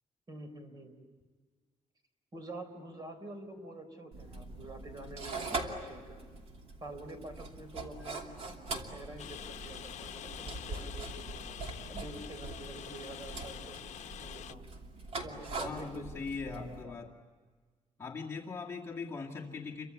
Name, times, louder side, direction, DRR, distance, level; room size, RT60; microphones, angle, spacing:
voice 1, 0.3-0.9 2.3-6.3 6.8-8.4 8.9-11.6 11.9-13.8 14.2-14.7 15.2-16.1 16.5-17.0, right 1 dB, 35° right, 7 dB, 3.7 m, -47 dB
sound 1, 4.1-16.8, right 3 dB, 55° right, 2.7 m, -42 dB
Rain, 9.2-14.6, left 10 dB, 75° left, 0.8 m, -46 dB
voice 2, 15.6-17.1 18.0-19.9, left 4 dB, 25° left, -3 dB, 2.1 m, -40 dB
29.0 x 24.0 x 8.3 m, 1.5 s
wide cardioid pair, 170°, 12 cm